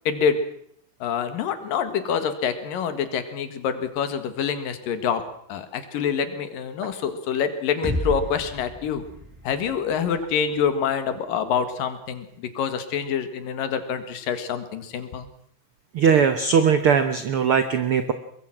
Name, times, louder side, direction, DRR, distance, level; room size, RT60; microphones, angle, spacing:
voice 1, 0.1-0.4 1.0-5.2 5.5-9.0 9.4-15.3, left 7 dB, 85° left, 10 dB, 3.4 m, -26 dB
sound 1, 7.8-11.7, left 1 dB, 5° right, 3.2 m, -34 dB
voice 2, 15.9-18.1, right 6 dB, 65° right, 10 dB, 1.4 m, -19 dB
23.5 x 21.0 x 6.0 m, 0.66 s
omnidirectional pair, 3.8 m